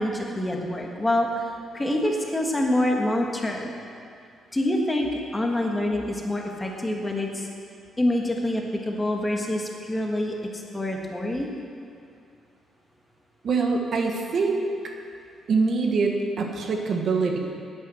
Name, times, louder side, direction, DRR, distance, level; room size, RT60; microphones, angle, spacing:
voice 1, 0.0-1.5 1.7-3.7 4.5-7.5 8.0-11.5, left 1 dB, 15° left, 0 dB, 1.5 m, -26 dB
voice 2, 13.4-14.6 15.5-17.4, right 4 dB, 50° right, 2 dB, 1.5 m, -24 dB
10.5 x 9.1 x 7.8 m, 2.4 s
cardioid pair, 125°, 0 cm